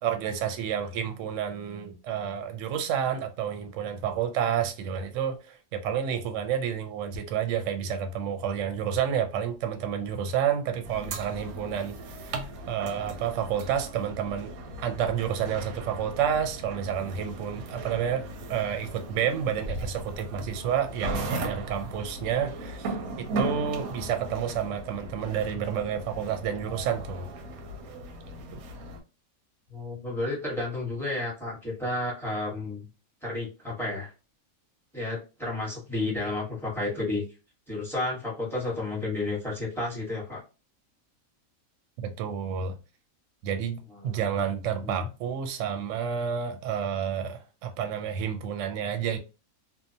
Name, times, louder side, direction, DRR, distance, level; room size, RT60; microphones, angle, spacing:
voice 1, 0.0-14.5 14.8-27.3 42.0-42.7 43.4-49.2, right 8 dB, 70° right, 0.8 m, -30 dB
sound 1, 10.8-29.0, right 2 dB, 90° right, 1.1 m, -37 dB
voice 2, 29.7-32.9 33.2-34.1 34.9-37.2 37.7-40.4 43.9-44.4 44.8-45.1, left 2 dB, ahead, 0.9 m, -32 dB
2.7 x 2.1 x 2.6 m
omnidirectional pair, 1.5 m